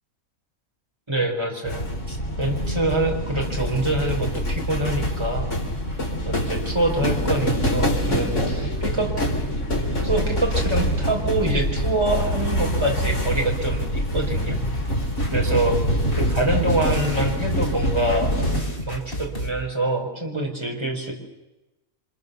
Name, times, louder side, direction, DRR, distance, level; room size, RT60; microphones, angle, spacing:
voice 1, 1.1-5.5 6.2-9.2 10.0-14.6 15.3-15.8 16.2-18.4 18.9-21.1, right 2 dB, 20° right, 1 dB, 4.8 m, -25 dB
sound 1, 1.6-18.6, equal, 55° left, 4.7 m, -25 dB
sound 2, 14.6-19.5, left 1 dB, 40° left, 3.9 m, -33 dB
29.5 x 26.0 x 7.0 m, 1.0 s
omnidirectional pair, 1.5 m